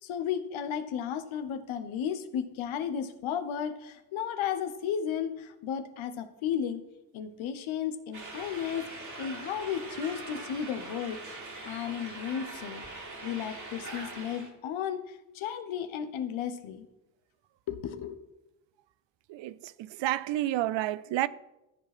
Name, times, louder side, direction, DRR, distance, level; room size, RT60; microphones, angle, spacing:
voice 1, 0.0-6.8 7.1-8.8 9.2-16.9 17.7-18.2, left 8 dB, 70° left, 1.1 m, -34 dB
sound 1, 8.1-14.5, right 2 dB, 35° right, 2.9 m, -42 dB
voice 2, 19.3-21.3, right 15 dB, 60° right, 0.5 m, -30 dB
13.0 x 4.7 x 6.0 m
hypercardioid pair, 45°, 50 cm